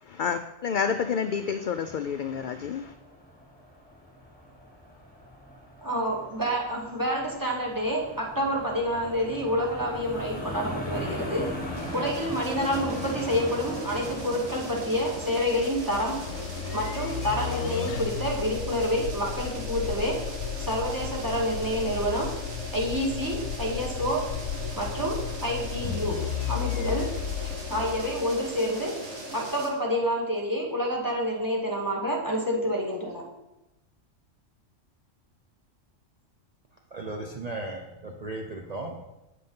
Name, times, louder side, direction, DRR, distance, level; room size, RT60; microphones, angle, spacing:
voice 1, 0.0-2.9, left 6 dB, 65° left, 8 dB, 0.5 m, -29 dB
sound 1, 1.9-15.4, left 1 dB, 5° left, 2.0 m, -39 dB
voice 2, 5.8-11.5 11.9-16.2 16.7-20.2 20.6-22.3 22.7-24.3 24.8-26.2 26.5-27.1 27.4-29.0 29.3-33.2, equal, 15° right, -1 dB, 1.9 m, -28 dB
sound 2, 11.7-29.7, right 1 dB, 65° right, 1.9 m, -39 dB
sound 3, 12.9-28.8, left 9 dB, 80° left, 0.9 m, -35 dB
voice 3, 36.9-39.1, right 2 dB, 35° right, 1 dB, 0.8 m, -36 dB
8.3 x 7.6 x 5.4 m, 0.96 s
omnidirectional pair, 1.3 m